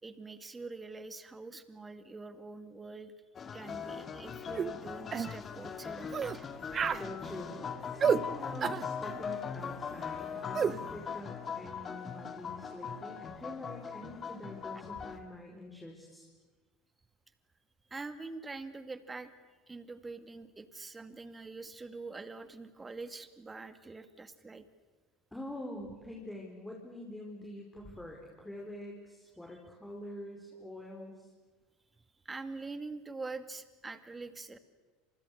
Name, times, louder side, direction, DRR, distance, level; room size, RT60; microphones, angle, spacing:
voice 1, 0.0-3.1 3.5-6.5 17.9-19.3 19.7-24.7 32.3-34.6, right 3 dB, 15° right, 11 dB, 2.1 m, -44 dB
sound 1, 3.4-15.2, left 6 dB, 30° left, 2.3 m, -40 dB
sound 2, 4.6-4.7 5.1-5.3 6.1-6.4 6.7-7.1 8.0-8.2 8.6-8.9 10.5-10.8, right 7 dB, 30° right, 0.7 m, -29 dB
voice 2, 6.9-16.3 25.3-31.3, left 1 dB, 5° left, 0 dB, 4.8 m, -45 dB
29.5 x 27.5 x 6.6 m, 1.3 s
figure-of-eight pair, 75°, 0 cm